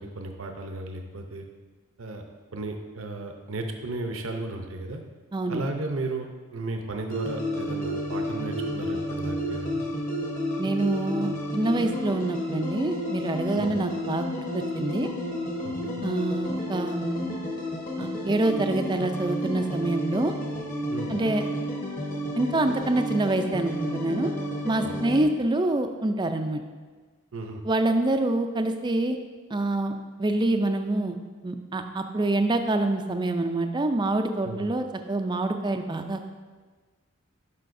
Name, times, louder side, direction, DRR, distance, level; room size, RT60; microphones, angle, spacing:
voice 1, 0.0-1.5 2.0-2.2 2.5-5.0 5.5-9.8 13.5-13.7 15.6-16.0 20.9-21.1 24.8-24.9 27.3-27.6 34.4-34.7, right 2 dB, 60° right, 4 dB, 0.7 m, -34 dB
voice 2, 5.3-5.6 10.6-15.1 16.0-17.4 18.0-20.3 21.1-21.4 22.4-24.3 24.6-26.6 27.6-29.2 29.5-29.9 30.2-31.2 31.4-36.2, right 2 dB, 20° right, 7 dB, 0.4 m, -26 dB
sound 1, 7.1-25.2, equal, 35° left, 1.1 m, -31 dB
12.0 x 5.6 x 2.6 m, 1.4 s
head